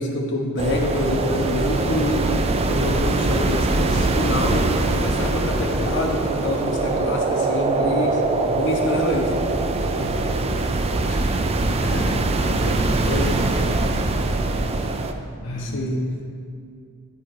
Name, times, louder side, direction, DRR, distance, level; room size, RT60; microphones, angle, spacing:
voice 1, 0.0-2.2 2.7-4.6 5.0-8.2 8.5-9.3 11.1-11.3 11.8-12.1 13.1-13.5 14.6-14.8 15.6-16.0, left 1 dB, 60° left, -1 dB, 1.1 m, -26 dB
sound 1, 0.6-15.1, right 2 dB, 30° right, 0.4 m, -22 dB
voice 2, 9.9-10.7 12.4-13.8 15.4-15.9, equal, 75° left, -3 dB, 0.9 m, -34 dB
9.7 x 4.7 x 4.5 m, 2.3 s
head